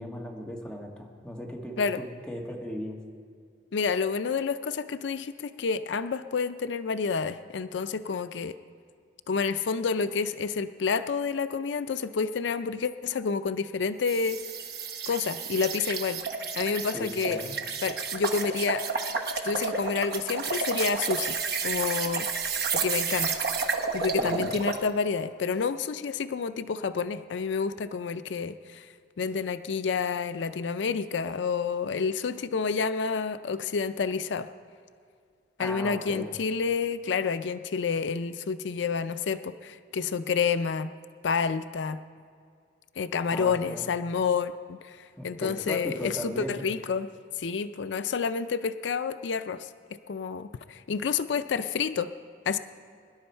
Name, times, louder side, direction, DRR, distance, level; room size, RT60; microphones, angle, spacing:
voice 1, 0.0-3.0 16.9-17.6 24.2-24.6 35.6-36.3 43.3-43.9 45.2-46.6, equal, 5° left, -1 dB, 1.6 m, -37 dB
voice 2, 3.7-8.6 9.3-14.4 15.1-16.2 16.6-17.4 17.8-18.9 19.4-22.3 22.7-23.3 23.9-28.9 29.2-34.5 35.6-40.9 41.2-42.0 43.0-47.1 47.4-49.7 50.1-52.1 52.5-52.6, left 5 dB, 85° left, 12 dB, 0.4 m, -29 dB
sound 1, 14.0-24.8, right 5 dB, 55° right, 1.1 m, -31 dB
22.5 x 11.0 x 4.5 m, 2.3 s
head